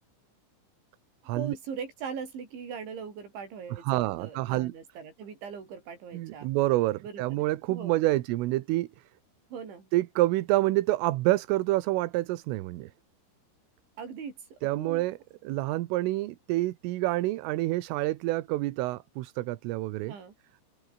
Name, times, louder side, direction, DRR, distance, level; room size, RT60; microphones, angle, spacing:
voice 1, 1.4-6.5 7.0-8.2 9.5-9.9 14.0-15.1 20.1-20.3, right 6 dB, 60° right, 7.7 m, -40 dB
voice 2, 3.8-4.7 6.1-8.9 9.9-12.9 14.6-15.2 15.4-20.1, right 18 dB, 80° right, 3.6 m, -27 dB
open air
omnidirectional pair, 6.0 m